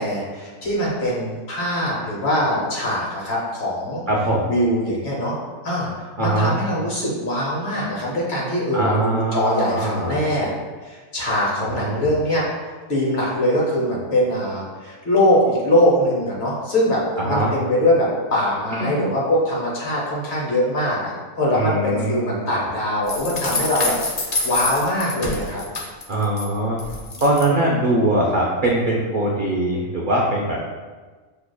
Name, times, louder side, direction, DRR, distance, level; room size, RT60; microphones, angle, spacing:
voice 1, 0.0-4.0 4.5-5.3 5.6-5.9 6.2-10.5 10.8-12.4 12.9-25.6, left 1 dB, 50° left, -4 dB, 1.2 m, -22 dB
voice 2, 4.1-4.5 6.2-6.6 8.7-10.2 11.6-12.0 17.2-17.5 18.8-19.0 21.5-22.5 26.1-26.8 27.2-30.6, right 1 dB, 60° right, -3 dB, 0.5 m, -22 dB
sound 1, 23.1-26.4 26.8-27.5, left 2 dB, 80° left, 0.3 m, -26 dB
6.3 x 2.8 x 2.2 m, 1.4 s
omnidirectional pair, 1.5 m